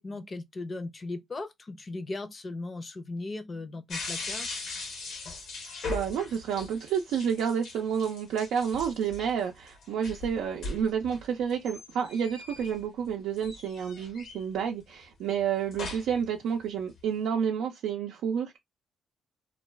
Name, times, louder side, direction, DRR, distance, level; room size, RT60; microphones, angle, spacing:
voice 1, 0.0-4.5, left 2 dB, 35° left, 0.6 m, -37 dB
sound 1, 3.9-13.1 13.4-14.6 15.4-16.3 16.6-17.2, left 3 dB, 70° left, 0.9 m, -39 dB
voice 2, 5.9-18.6, right 7 dB, 85° right, 0.4 m, -30 dB
2.3 x 2.2 x 3.2 m
cardioid pair, 90°, 0 cm